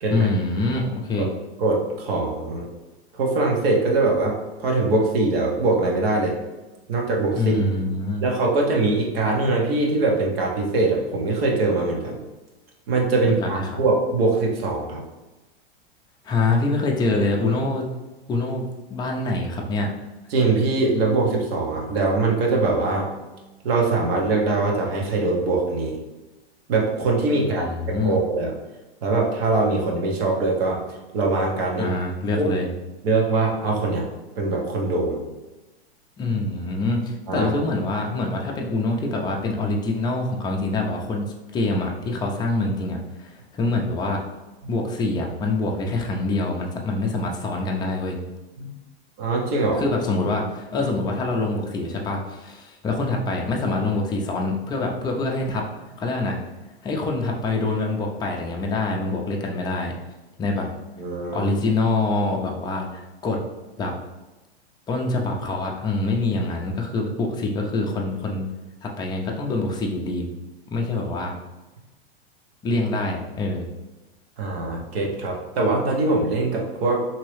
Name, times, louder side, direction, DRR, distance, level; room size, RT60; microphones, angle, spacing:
voice 1, 0.1-1.3 7.3-8.2 13.4-13.8 16.2-17.8 18.3-19.9 27.5-28.2 31.8-32.7 36.2-41.3 41.5-44.2 44.7-48.2 49.8-55.6 56.0-56.4 56.8-59.9 60.4-60.7 61.3-63.4 63.8-63.9 64.9-68.5 68.8-70.3 70.7-71.4 72.6-73.7, left 2 dB, 15° left, 0 dB, 0.4 m, -25 dB
voice 2, 1.6-2.7 3.1-6.3 6.9-7.7 8.2-12.2 12.9-15.0 20.3-23.1 23.6-26.0 26.7-28.5 29.0-31.9 32.4-32.5 33.0-34.1 34.4-35.2 37.3-37.5 44.6-44.7 48.6-48.7 49.2-49.9 61.0-61.5 74.4-77.0, right 3 dB, 70° right, -1 dB, 0.9 m, -22 dB
2.9 x 2.7 x 3.2 m, 1.1 s
hypercardioid pair, 120°, 31 cm